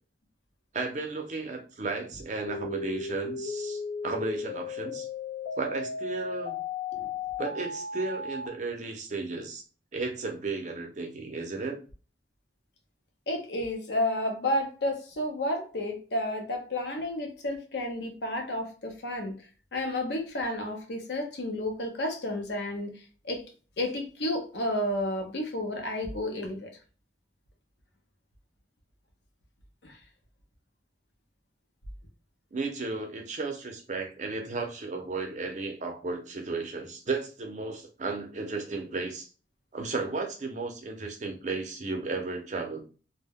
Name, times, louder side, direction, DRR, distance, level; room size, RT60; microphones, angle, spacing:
voice 1, 0.7-5.1 5.6-6.6 7.4-9.6 9.9-11.8 32.5-39.3 39.7-42.8, right 3 dB, 45° right, 0.6 m, -34 dB
sound 1, 2.5-8.5, left 4 dB, 35° left, 0.7 m, -35 dB
voice 2, 13.3-19.3 19.7-23.0 23.2-23.4 23.8-26.7 29.8-30.0, left 1 dB, 70° left, 0.7 m, -31 dB
2.1 x 2.1 x 3.4 m
head